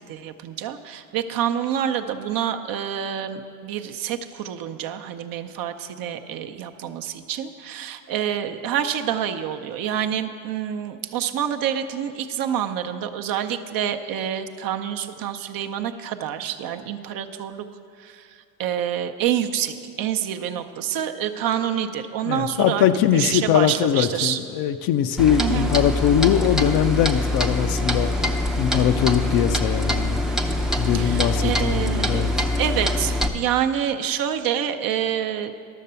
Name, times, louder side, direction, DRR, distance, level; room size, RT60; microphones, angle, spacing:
voice 1, 0.0-17.6 18.0-22.9 23.1-24.4 25.4-25.7 30.9-35.5, right 9 dB, 50° right, 7 dB, 0.7 m, -27 dB
voice 2, 22.2-28.1 28.6-30.2 30.8-32.3, left 10 dB, 55° left, 11 dB, 0.6 m, -21 dB
Clock, 25.2-33.3, left 1 dB, ahead, 0.6 m, -24 dB
12.0 x 6.6 x 6.8 m, 2.3 s
supercardioid pair, 95°, 44 cm